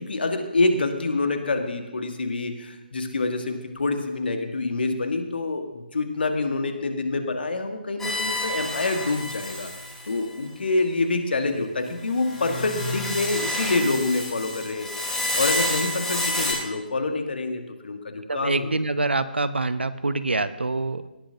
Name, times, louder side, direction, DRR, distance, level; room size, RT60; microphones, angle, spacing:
voice 1, 0.0-9.7 10.0-14.9 15.4-18.7, left 3 dB, 70° left, 5 dB, 1.7 m, -26 dB
sound 1, 8.0-10.2 12.2-16.5, left 1 dB, 10° left, 3.1 m, -29 dB
voice 2, 18.3-21.1, right 2 dB, 85° right, 13 dB, 0.8 m, -25 dB
18.0 x 10.0 x 2.9 m, 1.0 s
figure-of-eight pair, 145°, 6 cm